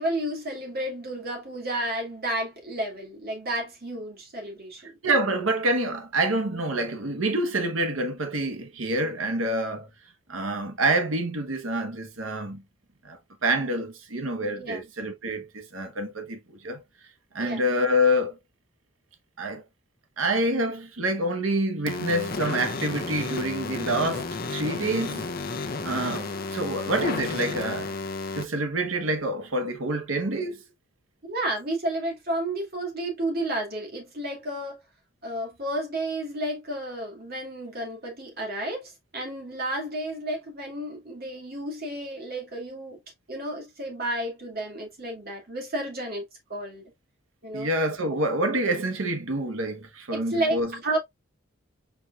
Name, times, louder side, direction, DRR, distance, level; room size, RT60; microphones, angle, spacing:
voice 1, 0.0-4.9 14.6-14.8 17.4-17.6 31.2-34.8 35.2-43.0 43.3-46.2 46.5-46.8 47.4-47.7 50.1-51.0, right 1 dB, 50° right, 2.2 m, -31 dB
voice 2, 5.0-9.9 10.3-12.6 13.0-16.8 17.3-18.4 19.4-19.6 20.2-25.3 25.8-27.9 28.3-30.6 47.5-50.7, right 1 dB, 90° right, 1.2 m, -27 dB
sound 1, 21.9-28.4, left 3 dB, 50° left, 0.7 m, -32 dB
4.7 x 4.4 x 2.4 m
head